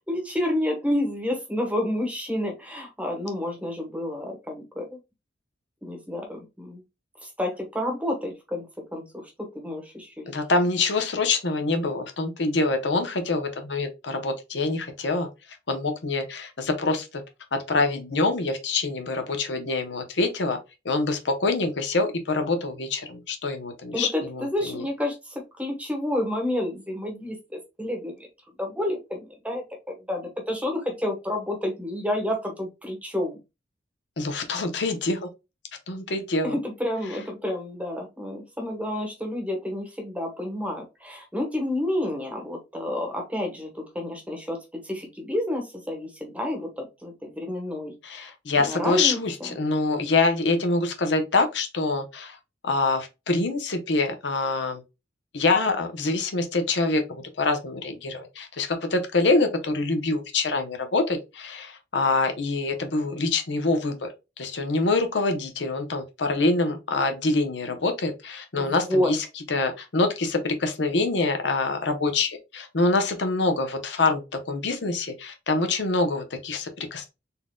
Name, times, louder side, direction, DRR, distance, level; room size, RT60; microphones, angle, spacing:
voice 1, 0.1-5.0 5.8-6.8 7.2-9.2 9.5-10.4 23.9-28.3 28.6-29.6 30.1-33.4 36.4-48.2 48.6-49.5 68.6-69.1, left 1 dB, 5° right, 1.1 m, -30 dB
voice 2, 10.3-15.3 15.7-17.2 17.7-20.6 20.8-24.8 34.2-35.3 35.9-36.6 48.0-52.4 52.6-54.8 55.3-64.1 64.4-77.1, left 3 dB, 65° left, 0.8 m, -25 dB
4.3 x 3.7 x 2.2 m
head